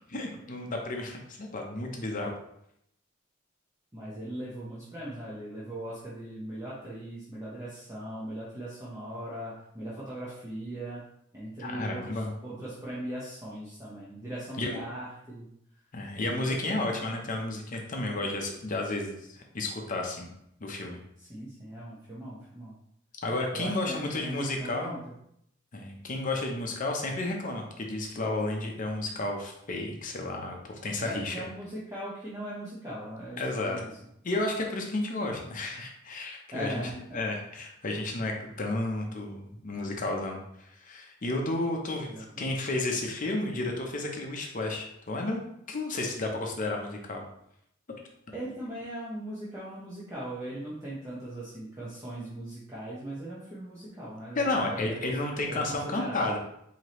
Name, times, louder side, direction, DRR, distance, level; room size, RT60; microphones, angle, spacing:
voice 1, 0.1-2.3 11.6-12.3 14.6-14.8 15.9-20.3 20.6-21.0 23.2-25.0 25.7-31.4 33.4-33.8 34.2-36.7 37.1-40.4 40.7-42.1 42.4-45.4 45.7-47.2 54.4-56.4, left 2 dB, 40° left, 1 dB, 0.6 m, -32 dB
voice 2, 3.9-11.0 11.3-15.5 16.3-16.9 21.2-22.7 23.5-25.0 31.0-33.9 36.5-37.2 42.0-42.5 48.3-55.2 55.5-56.3, right 1 dB, 15° right, -9 dB, 0.8 m, -39 dB
4.7 x 2.8 x 3.0 m, 0.74 s
head